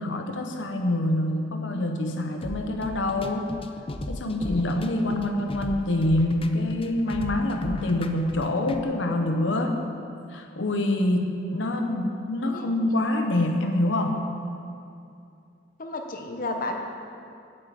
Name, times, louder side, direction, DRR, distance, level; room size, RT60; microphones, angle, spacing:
voice 1, 0.0-3.5 4.1-9.8 10.3-14.2, left 1 dB, 75° left, 4 dB, 0.9 m, -26 dB
sound 1, 2.4-8.8, left 1 dB, 30° left, 0.6 m, -36 dB
voice 2, 15.8-16.8, left 2 dB, 50° left, 3 dB, 0.9 m, -32 dB
8.6 x 7.6 x 8.3 m, 2.5 s
head